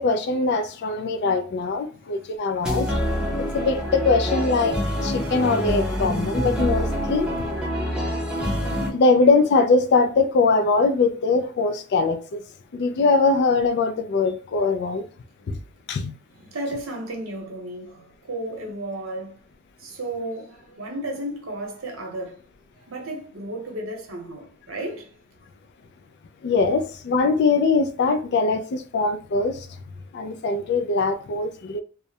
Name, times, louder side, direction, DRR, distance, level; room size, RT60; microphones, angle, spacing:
voice 1, 0.0-2.9 3.4-7.6 8.9-12.4 12.7-15.0 15.5-15.6 15.9-16.1 26.4-29.7 30.1-31.8, left 3 dB, 55° left, 0.3 m, -22 dB
sound 1, 2.6-8.9, equal, 5° right, 0.5 m, -26 dB
voice 2, 16.3-19.4 19.8-22.4 22.8-25.1, right 1 dB, 80° right, 0.8 m, -33 dB
2.3 x 2.0 x 2.7 m
head